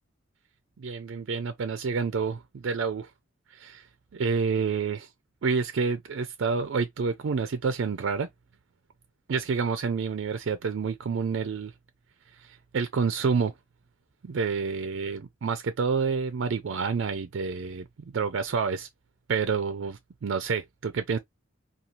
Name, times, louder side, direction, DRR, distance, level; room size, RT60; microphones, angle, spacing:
voice 1, 0.8-3.1 3.5-3.8 4.1-5.1 5.4-8.3 9.3-11.7 12.4-13.5 14.2-17.9 18.1-18.9 19.3-21.2, right 5 dB, 65° right, 0.4 m, -28 dB
3.0 x 2.3 x 2.5 m
head